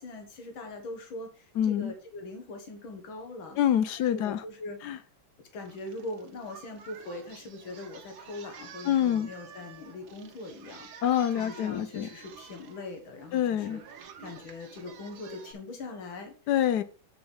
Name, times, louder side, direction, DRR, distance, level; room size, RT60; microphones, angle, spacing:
voice 1, 0.0-3.6 4.0-5.1 5.5-11.1 11.3-16.5, left 2 dB, 85° left, 5 dB, 2.2 m, -42 dB
voice 2, 1.6-1.9 3.6-4.4 4.8-5.0 8.9-9.3 11.0-12.1 13.3-13.8 16.5-16.8, left 10 dB, 70° left, 13 dB, 1.1 m, -26 dB
Singing, 5.6-15.5, right 7 dB, 75° right, 1.8 m, -50 dB
7.9 x 5.6 x 5.2 m, 0.38 s
omnidirectional pair, 2.1 m